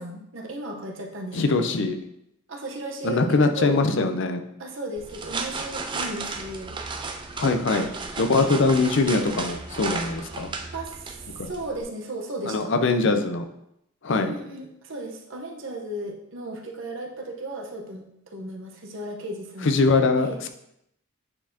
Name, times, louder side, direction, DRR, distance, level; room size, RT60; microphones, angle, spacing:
voice 1, 0.0-1.7 2.5-3.8 4.6-6.8 8.5-8.7 10.7-12.7 14.1-19.7 20.2-20.4, right 1 dB, 65° right, 1 dB, 0.9 m, -35 dB
voice 2, 1.3-2.0 3.0-4.4 7.4-7.9 8.2-10.5 11.4-11.5 12.5-13.4 14.0-14.3 19.6-20.5, left 3 dB, 60° left, 7 dB, 0.5 m, -22 dB
sound 1, 5.0-11.8, right 4 dB, 25° right, 0.4 m, -34 dB
8.8 x 4.1 x 2.8 m, 0.79 s
head